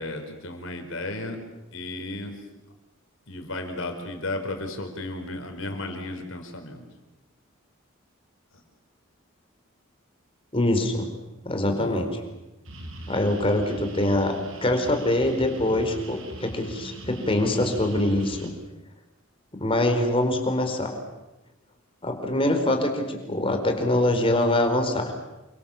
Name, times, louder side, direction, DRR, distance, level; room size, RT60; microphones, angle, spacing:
voice 1, 0.0-1.4 1.7-2.3 3.3-6.8 11.6-12.1, left 2 dB, 70° left, 4 dB, 5.1 m, -34 dB
voice 2, 10.5-11.1 11.4-12.1 13.1-18.5 19.6-21.0 22.0-25.1, left 1 dB, 25° left, 5 dB, 4.4 m, -24 dB
sound 1, 12.6-18.5, right 1 dB, 70° right, 4.7 m, -41 dB
29.0 x 24.5 x 7.3 m, 1.0 s
head